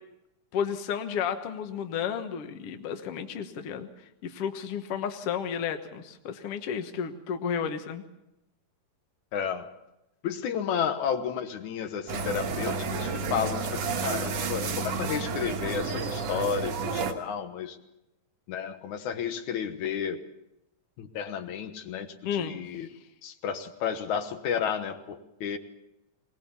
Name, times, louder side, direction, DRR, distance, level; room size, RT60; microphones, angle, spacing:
voice 1, 0.5-3.9 4.2-8.0 22.3-22.9, left 7 dB, 60° left, 7 dB, 2.1 m, -32 dB
voice 2, 9.3-9.7 10.2-17.8 18.5-20.2 21.0-22.9 23.2-25.6, left 7 dB, 85° left, 7 dB, 2.7 m, -32 dB
sound 1, 12.1-17.1, right 4 dB, 65° right, 2.5 m, -31 dB
21.0 x 20.0 x 7.1 m, 0.91 s
omnidirectional pair, 3.3 m